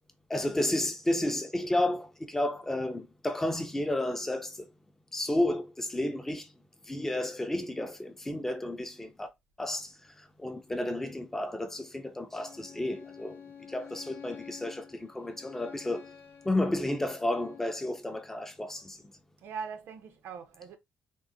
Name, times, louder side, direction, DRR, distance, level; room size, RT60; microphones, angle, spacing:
voice 1, 0.3-4.7 5.1-6.5 6.8-9.3 9.6-13.4 13.7-16.1 16.4-19.0, left 1 dB, 10° left, 0.4 m, -32 dB
Bowed string instrument, 12.3-17.8, left 7 dB, 75° left, 0.6 m, -49 dB
voice 2, 19.4-20.8, right 6 dB, 80° right, 0.6 m, -41 dB
3.6 x 2.0 x 2.7 m
cardioid pair, 165°, 4 cm